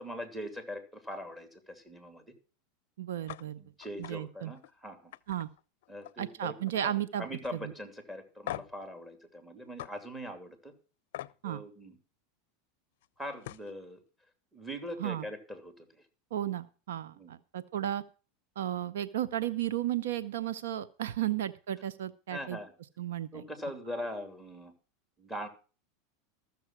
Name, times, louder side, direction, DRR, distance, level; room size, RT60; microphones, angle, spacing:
voice 1, 0.0-2.2 3.6-5.1 5.9-6.5 6.8-10.7 11.4-12.0 13.2-14.0 14.5-15.9 17.1-17.3 22.3-22.7 23.3-24.7 25.2-25.5, equal, 10° right, 6 dB, 2.8 m, -41 dB
voice 2, 3.0-3.6 4.0-4.5 5.3-5.5 6.2-7.3 7.5-7.7 11.4-11.6 15.0-15.3 16.3-18.0 18.6-22.6 23.0-23.4, right 12 dB, 80° right, 16 dB, 0.6 m, -34 dB
sound 1, 3.3-3.4 3.8-4.1 4.5-4.7 5.1-6.3 6.6-7.0 7.4-7.5 8.5-8.8 9.8-9.9 11.1-11.4 13.0-13.1 13.4-13.7, left 14 dB, 70° left, 0.5 m, -42 dB
14.0 x 7.0 x 6.0 m, 0.36 s
hypercardioid pair, 105°, 0 cm